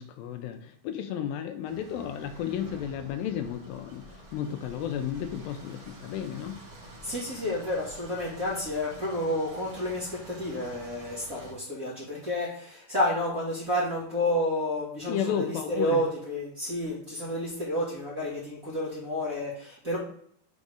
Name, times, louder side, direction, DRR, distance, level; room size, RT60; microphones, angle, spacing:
voice 1, 0.0-6.6 15.1-16.0, left 9 dB, 85° left, 7 dB, 2.4 m, -33 dB
sound 1, 1.6-11.5, right 1 dB, 60° right, 1.1 m, -48 dB
voice 2, 7.0-20.0, left 1 dB, 30° right, -7 dB, 1.9 m, -30 dB
6.2 x 4.0 x 4.8 m, 0.64 s
omnidirectional pair, 4.2 m